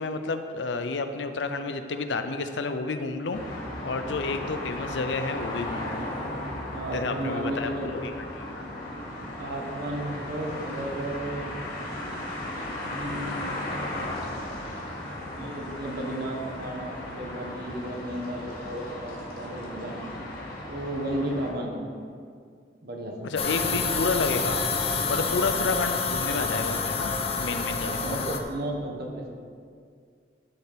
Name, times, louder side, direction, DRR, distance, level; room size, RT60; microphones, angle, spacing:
voice 1, 0.0-3.4 3.8-6.0 6.9-8.1 23.2-24.6 25.1-27.1 27.4-28.0, left 3 dB, 85° left, 8 dB, 0.6 m, -30 dB
sound 1, 3.3-21.5, left 1 dB, 60° left, 2.2 m, -36 dB
voice 2, 6.7-8.0 9.4-11.5 12.7-13.8 15.4-20.1 20.7-21.9 22.8-23.2 27.8-29.3, right 1 dB, 60° right, 0 dB, 1.3 m, -34 dB
sound 2, 23.4-28.4, left 4 dB, 35° left, 0.7 m, -28 dB
12.0 x 5.9 x 3.6 m, 2.2 s
head